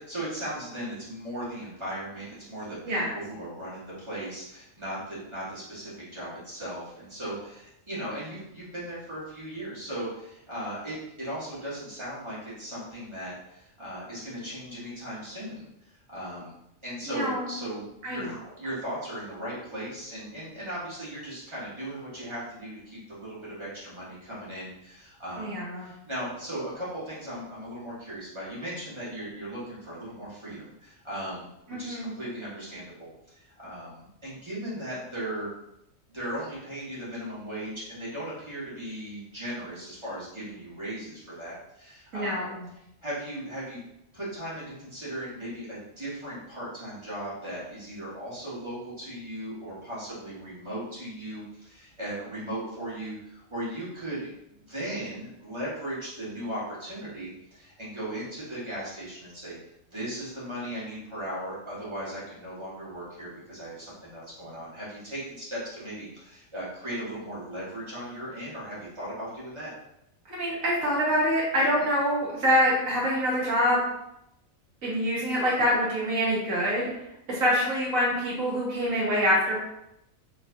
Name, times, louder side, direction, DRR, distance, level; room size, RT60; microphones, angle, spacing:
voice 1, 0.0-16.5 16.8-18.3 18.6-35.5 36.1-42.5 43.0-43.8 44.1-59.6 59.9-69.7, right 1 dB, 20° right, -9 dB, 1.6 m, -37 dB
voice 2, 17.1-17.5 18.0-18.3 25.4-25.9 31.7-32.2 42.1-42.7 70.3-73.8 74.8-76.9 77.3-79.6, equal, 90° right, -5 dB, 1.9 m, -25 dB
4.7 x 3.2 x 2.7 m, 0.84 s
omnidirectional pair, 1.4 m